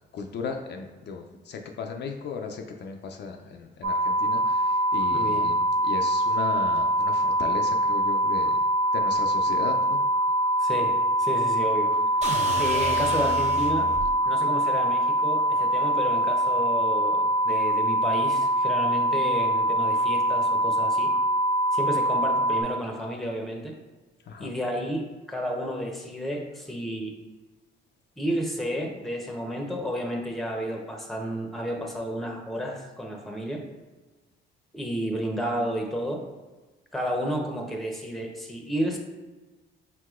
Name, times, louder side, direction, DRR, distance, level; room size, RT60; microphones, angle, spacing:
voice 1, 0.1-8.6 8.9-10.0 24.3-24.5, left 5 dB, 60° left, 3 dB, 0.4 m, -36 dB
sound 1, 3.8-22.6, right 1 dB, 70° right, 0.6 m, -24 dB
voice 2, 5.1-5.5 10.6-12.0 12.6-13.9 14.2-21.1 21.7-23.8 24.4-27.2 28.2-33.7 34.7-36.2 36.9-39.0, equal, ahead, 1 dB, 0.8 m, -31 dB
sound 2, 12.2-14.2, right 2 dB, 35° right, 0.8 m, -32 dB
4.7 x 3.6 x 2.4 m, 1.2 s
cardioid pair, 90°, 20 cm